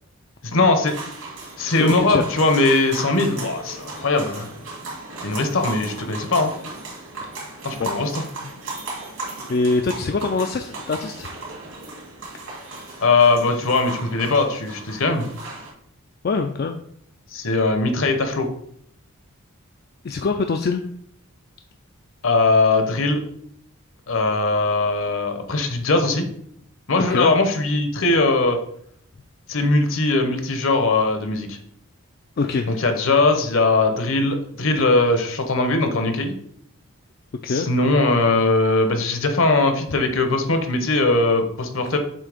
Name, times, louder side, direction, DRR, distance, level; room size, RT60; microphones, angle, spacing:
voice 1, 0.4-0.9 1.6-4.5 5.2-6.5 7.6-8.2 13.0-15.2 17.3-18.5 22.2-23.2 24.1-26.3 26.9-28.6 29.5-31.6 32.7-36.4 37.5-42.0, left 3 dB, 65° left, 6 dB, 0.9 m, -20 dB
sound 1, 0.8-15.7, right 2 dB, 75° right, 2.7 m, -36 dB
voice 2, 1.6-2.2 7.8-7.9 9.5-11.8 12.6-13.0 16.2-16.8 20.0-20.8 27.0-27.3 32.4-32.7 37.4-37.7 41.8-41.9, left 4 dB, 45° left, 5 dB, 0.3 m, -24 dB
7.3 x 2.8 x 5.0 m, 0.67 s
head